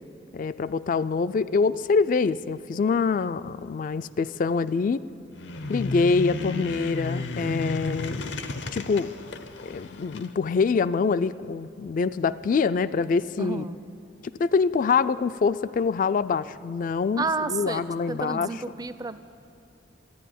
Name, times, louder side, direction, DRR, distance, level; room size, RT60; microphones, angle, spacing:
voice 1, 0.3-5.0 5.7-8.3 8.7-9.1 9.6-13.6 14.4-18.5, left 5 dB, 45° left, 15 dB, 0.3 m, -25 dB
sound 1, 5.3-10.3, left 2 dB, 75° left, 0.7 m, -33 dB
voice 2, 13.4-13.8 17.2-17.8 18.1-19.2, right 4 dB, 20° right, 12 dB, 0.4 m, -30 dB
13.0 x 10.0 x 9.2 m, 2.6 s
head